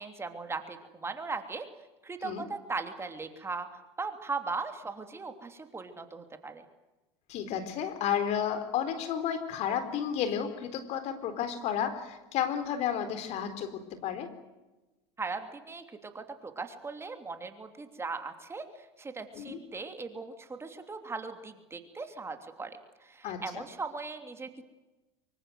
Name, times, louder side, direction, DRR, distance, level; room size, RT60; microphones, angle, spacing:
voice 1, 0.0-1.7 2.0-3.7 4.0-6.6 15.2-24.6, right 4 dB, 20° right, 7 dB, 3.0 m, -38 dB
voice 2, 7.3-14.3 19.3-19.6 23.2-23.6, left 9 dB, 50° left, 10 dB, 4.2 m, -32 dB
25.0 x 24.0 x 8.0 m, 1.1 s
hypercardioid pair, 90°, 14 cm